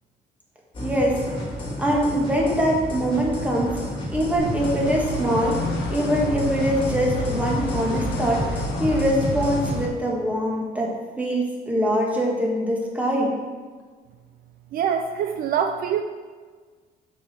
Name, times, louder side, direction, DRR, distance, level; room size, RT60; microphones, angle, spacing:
sound 1, 0.7-9.8, equal, 30° left, 2.1 m, -30 dB
voice 1, 0.8-1.2 1.8-3.8 4.1-5.6 5.9-10.9 11.2-13.3, equal, 10° right, -2 dB, 1.6 m, -23 dB
sound 2, 4.4-9.9, left 4 dB, 85° left, 1.1 m, -32 dB
voice 2, 14.7-16.0, right 8 dB, 60° right, 7 dB, 0.4 m, -24 dB
6.4 x 5.3 x 4.3 m, 1.5 s
cardioid pair, 110°, 17 cm